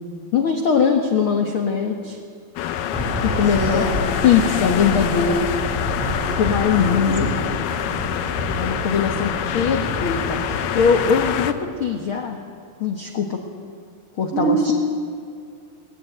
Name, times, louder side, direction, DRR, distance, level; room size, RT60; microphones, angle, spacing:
voice 1, 0.3-2.2 3.4-3.9 4.2-5.5 6.4-7.3 8.6-12.4 12.8-13.4 14.2-14.7, left 6 dB, 55° left, 3 dB, 1.6 m, -21 dB
sound 1, 2.6-11.5, left 10 dB, 75° left, 2.4 m, -26 dB
Aircraft / Engine, 2.9-11.5, equal, 5° right, 1.5 m, -29 dB
voice 2, 3.3-3.9 6.8-7.4 14.3-14.7, right 3 dB, 20° right, -2 dB, 4.3 m, -24 dB
21.0 x 20.0 x 9.1 m, 2.3 s
omnidirectional pair, 4.2 m